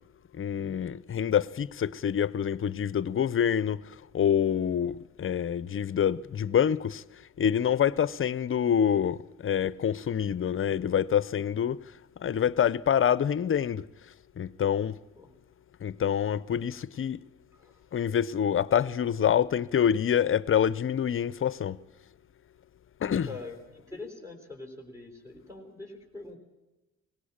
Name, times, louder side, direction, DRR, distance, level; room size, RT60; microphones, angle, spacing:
voice 1, 0.3-3.8 4.1-7.0 7.4-11.8 12.2-13.8 14.4-15.0 15.8-17.2 17.9-21.8 23.0-23.3, left 8 dB, 45° left, 0.7 m, -26 dB
voice 2, 23.0-26.4, left 3 dB, 10° right, 4.6 m, -44 dB
19.0 x 16.5 x 8.7 m
cardioid pair, 90°, 30 cm